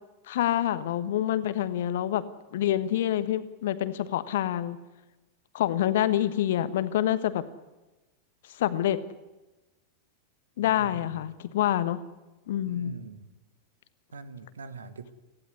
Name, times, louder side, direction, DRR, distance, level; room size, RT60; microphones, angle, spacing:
voice 1, 0.3-2.2 2.5-4.8 5.5-7.4 8.5-9.0 10.6-12.0 12.5-13.0, left 12 dB, 55° left, 14 dB, 1.3 m, -27 dB
voice 2, 10.6-11.2 12.7-13.3 14.1-15.1, right 4 dB, 70° right, 12 dB, 1.7 m, -43 dB
19.0 x 15.5 x 9.9 m, 1.1 s
figure-of-eight pair, 90°, 0 cm